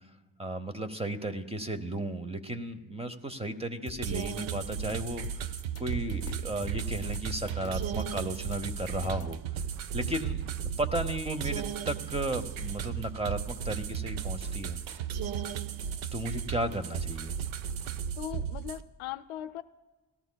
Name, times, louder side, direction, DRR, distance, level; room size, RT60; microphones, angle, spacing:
voice 1, 0.4-5.2 5.8-9.6 9.9-14.8 16.1-17.3, right 1 dB, 15° right, 9 dB, 0.8 m, -34 dB
sound 1, 3.9-9.4, left 7 dB, 30° left, 0.6 m, -45 dB
sound 2, 4.0-18.8, right 8 dB, 75° right, 0.7 m, -35 dB
voice 2, 18.2-19.6, left 12 dB, 80° left, 13 dB, 0.6 m, -39 dB
18.5 x 13.5 x 2.2 m, 1.2 s
cardioid pair, 80°, 48 cm